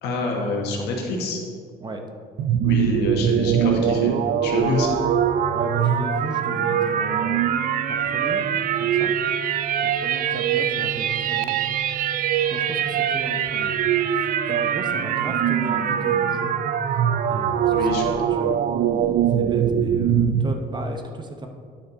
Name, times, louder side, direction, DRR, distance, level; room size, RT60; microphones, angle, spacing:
voice 1, 0.0-1.4 2.6-4.1 4.4-5.0 17.7-18.0, left 2 dB, 85° left, 0 dB, 1.6 m, -26 dB
sound 1, 2.4-20.5, right 9 dB, 55° right, 0.4 m, -22 dB
voice 2, 5.5-7.5 7.9-9.1 9.8-11.6 12.5-13.8 14.1-16.5 17.3-18.6 19.4-21.5, right 2 dB, 25° right, 4 dB, 0.8 m, -35 dB
9.9 x 5.7 x 4.1 m, 2.1 s
cardioid pair, 110°, 17 cm